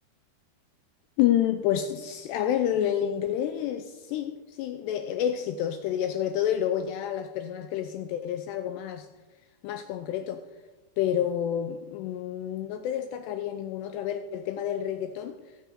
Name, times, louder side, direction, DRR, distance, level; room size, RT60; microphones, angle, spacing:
voice 1, 1.2-9.1 9.6-10.4 11.0-15.4, left 10 dB, 85° left, 2.5 m, -29 dB
17.5 x 6.5 x 6.7 m
omnidirectional pair, 5.3 m